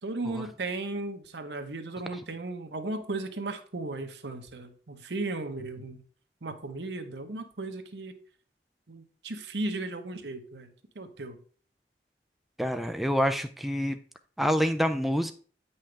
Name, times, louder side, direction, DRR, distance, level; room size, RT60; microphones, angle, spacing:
voice 1, 0.0-6.0 6.4-8.1 8.9-11.4, right 2 dB, 75° right, 7 dB, 1.0 m, -36 dB
voice 2, 12.6-14.0 14.4-15.3, equal, ahead, 7 dB, 0.4 m, -26 dB
8.9 x 5.6 x 3.3 m, 0.43 s
head